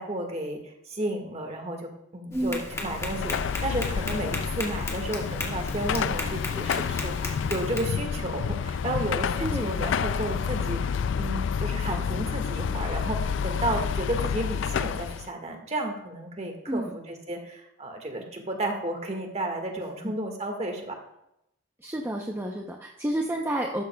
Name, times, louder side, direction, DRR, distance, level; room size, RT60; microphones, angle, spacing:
voice 1, 0.0-21.0, right 1 dB, 30° right, 3 dB, 1.7 m, -32 dB
Tap, 2.3-7.8, left 1 dB, 15° left, 1.9 m, -36 dB
voice 2, 2.3-2.6 9.4-9.8 16.7-17.0 20.0-20.1 21.8-23.8, right 1 dB, 10° right, 0 dB, 0.7 m, -30 dB
Car passing by / Traffic noise roadway noise / Engine, 2.7-15.3, left 6 dB, 65° left, 0.3 m, -29 dB
14.0 x 12.5 x 2.3 m, 0.83 s
head